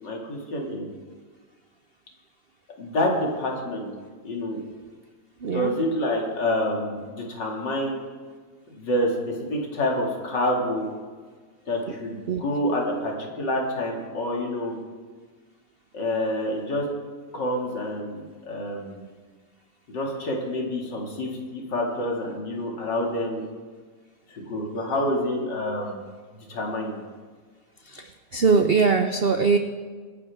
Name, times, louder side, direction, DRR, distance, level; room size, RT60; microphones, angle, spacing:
voice 1, 0.0-0.9 2.8-3.9 4.2-4.6 5.5-8.0 8.7-10.9 11.7-14.8 15.9-16.8 17.3-19.0 19.9-23.4 24.3-26.1 26.3-27.0, left 1 dB, 75° left, -1 dB, 3.0 m, -27 dB
voice 2, 5.4-5.7 12.3-12.4 27.9-29.6, right 5 dB, 65° right, 6 dB, 0.6 m, -21 dB
24.5 x 10.0 x 3.6 m, 1.5 s
omnidirectional pair, 1.9 m